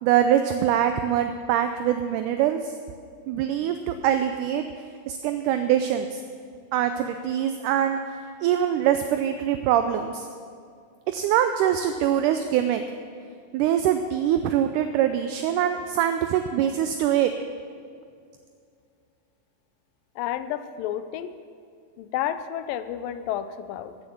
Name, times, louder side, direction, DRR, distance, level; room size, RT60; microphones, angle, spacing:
voice 1, 0.0-2.7 3.3-4.6 5.1-6.2 6.7-8.0 8.4-10.3 11.1-12.8 13.5-17.3, right 10 dB, 80° right, 8 dB, 1.9 m, -23 dB
voice 2, 20.2-21.3 22.0-24.0, left 11 dB, 85° left, 12 dB, 2.3 m, -31 dB
15.0 x 7.8 x 7.1 m, 2.3 s
omnidirectional pair, 3.9 m